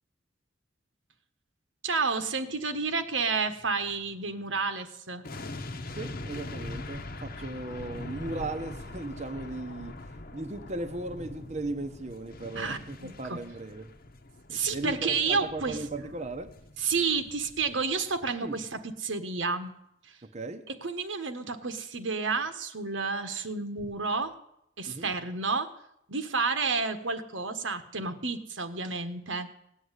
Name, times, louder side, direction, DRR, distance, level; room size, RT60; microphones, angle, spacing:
voice 1, 1.8-5.3 12.5-13.4 14.5-15.8 16.8-19.7 20.1-20.2 20.8-24.3 24.8-25.7 26.1-29.5, right 4 dB, 85° right, 1.4 m, -30 dB
sound 1, 5.2-18.4 18.7-18.8, left 2 dB, 50° left, 1.0 m, -42 dB
voice 2, 5.9-13.9 14.5-16.5 18.4-18.6 20.2-20.7 24.9-25.1, right 2 dB, 35° right, 0.9 m, -37 dB
17.5 x 7.9 x 9.8 m
head